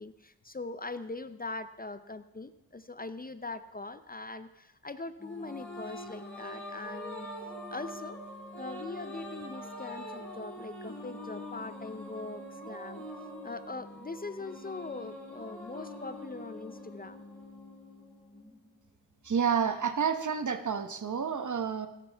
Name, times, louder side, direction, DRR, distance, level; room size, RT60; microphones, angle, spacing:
voice 1, 0.0-7.3 7.7-8.2 8.6-13.0 13.4-17.2, left 3 dB, 25° left, 11 dB, 0.6 m, -41 dB
sound 1, 5.2-18.8, left 1 dB, 5° left, 4.8 m, -44 dB
voice 2, 19.2-21.9, right 7 dB, 50° right, 9 dB, 1.0 m, -29 dB
15.0 x 12.5 x 3.4 m, 0.94 s
cardioid pair, 55°, 38 cm